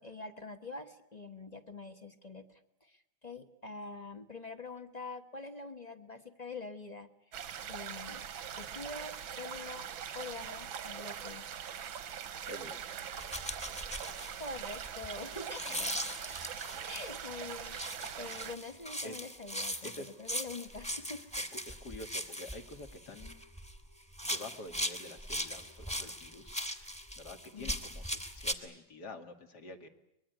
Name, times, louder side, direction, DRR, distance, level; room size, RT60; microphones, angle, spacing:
voice 1, 0.0-7.3 7.7-8.2 8.6-9.9 10.1-11.5 14.4-15.8 16.8-21.2 27.5-27.8, left 3 dB, 25° left, 7 dB, 1.1 m, -45 dB
sound 1, 7.3-18.6, right 8 dB, 85° right, 2.0 m, -42 dB
voice 2, 12.4-12.8 15.7-16.2 19.0-19.2 19.8-20.1 21.4-23.4 24.2-26.6 27.2-29.9, left 2 dB, 55° left, 6 dB, 2.5 m, -48 dB
sound 2, 13.2-17.2 17.6-23.8 24.1-28.5, equal, 5° left, 1.6 m, -39 dB
24.0 x 21.5 x 9.3 m, 0.83 s
omnidirectional pair, 2.1 m